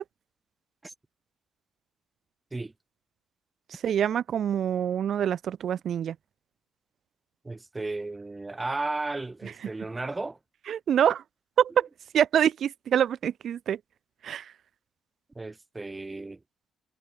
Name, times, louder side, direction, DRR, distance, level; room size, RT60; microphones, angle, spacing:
voice 1, 3.7-6.2 10.7-11.2 11.6-11.9 12.1-13.8 14.2-14.5, right 9 dB, 65° right, 0.7 m, -25 dB
voice 2, 7.4-10.4 15.3-16.4, right 2 dB, 20° right, 2.3 m, -34 dB
cardioid pair, 90°, 0 cm